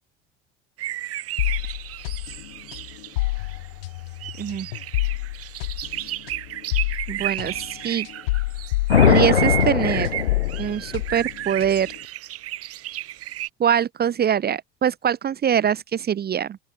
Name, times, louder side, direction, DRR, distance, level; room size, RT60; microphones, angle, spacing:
sound 1, 0.8-3.7 4.2-13.5, right 14 dB, 50° right, 5.5 m, -33 dB
sound 2, 1.4-9.8 10.0-12.0, left 20 dB, 65° left, 2.4 m, -29 dB
voice 1, 7.1-8.1 9.0-10.1 10.6-11.9 13.6-16.6, right 9 dB, 30° right, 1.2 m, -23 dB
sound 3, 8.9-11.0, left 7 dB, 85° left, 1.2 m, -19 dB
open air
figure-of-eight pair, 65°, 31 cm